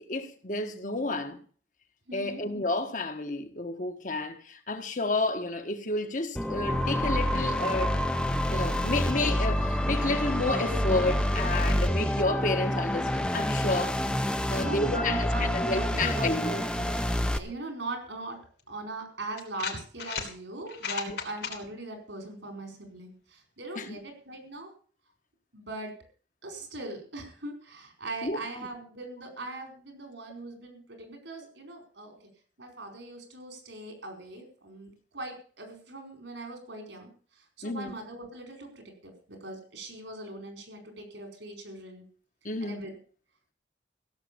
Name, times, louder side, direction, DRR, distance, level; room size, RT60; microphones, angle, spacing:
voice 1, 0.0-1.4 2.1-7.9 8.5-14.0 14.5-16.5 21.1-21.2 23.7-24.0 28.2-28.4 37.6-37.9 42.4-42.9, left 2 dB, 45° left, 1.5 m, -31 dB
voice 2, 2.1-2.4 14.5-16.9 17.3-18.4 18.7-24.7 25.5-25.9 26.4-32.2 32.6-37.1 37.4-42.0 42.6-42.9, right 2 dB, 85° right, 4.7 m, -40 dB
sound 1, 6.4-17.4, left 1 dB, 5° left, 0.8 m, -28 dB
sound 2, 18.6-18.7 19.4-20.3 20.7-21.6, left 6 dB, 65° left, 3.2 m, -34 dB
16.0 x 7.7 x 7.0 m
head